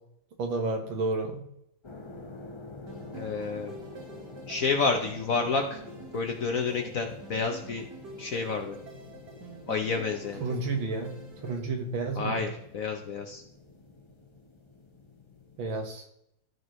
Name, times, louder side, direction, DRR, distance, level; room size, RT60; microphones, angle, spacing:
voice 1, 0.4-1.4 10.4-11.1 11.4-12.5 15.6-16.0, right 3 dB, 75° right, 4 dB, 2.1 m, -31 dB
sound 1, 1.8-15.8, left 3 dB, 30° left, 0.5 m, -48 dB
sound 2, 2.9-11.6, right 3 dB, 60° right, 2.0 m, -47 dB
voice 2, 3.1-3.7 4.5-5.8 6.1-7.9 8.2-8.8 9.7-10.4 12.2-13.4, left 4 dB, 60° left, 4 dB, 1.0 m, -29 dB
13.5 x 4.7 x 3.1 m, 0.76 s
omnidirectional pair, 2.1 m